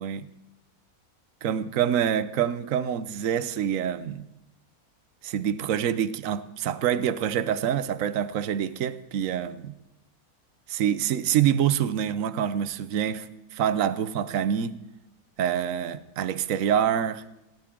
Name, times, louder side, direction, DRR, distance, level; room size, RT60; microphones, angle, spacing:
voice 1, 1.4-4.3 5.2-9.8 10.7-14.8 15.4-17.2, right 9 dB, 65° right, 1.2 m, -26 dB
18.5 x 18.0 x 3.8 m
omnidirectional pair, 1.6 m